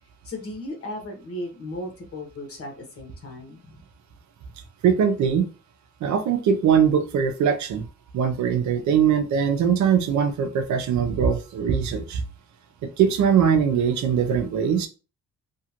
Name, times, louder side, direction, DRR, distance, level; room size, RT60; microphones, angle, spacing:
voice 1, 0.2-3.8 8.5-8.6, left 1 dB, 50° left, 3 dB, 1.2 m, -36 dB
voice 2, 4.8-5.4 6.0-7.9 8.1-12.2 12.8-14.9, right 7 dB, 70° right, 8 dB, 0.6 m, -21 dB
2.9 x 2.4 x 2.8 m, 0.33 s
cardioid pair, 90°, 30 cm